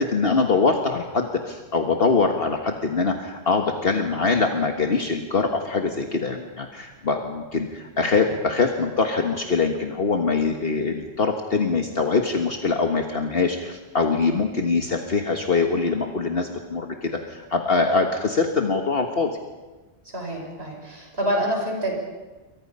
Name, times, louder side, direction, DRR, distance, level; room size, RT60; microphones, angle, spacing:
voice 1, 0.0-19.4, left 4 dB, 60° left, 3 dB, 1.7 m, -23 dB
voice 2, 20.1-21.9, equal, 65° right, 0 dB, 6.4 m, -27 dB
28.5 x 23.0 x 5.6 m, 1.2 s
omnidirectional pair, 1.1 m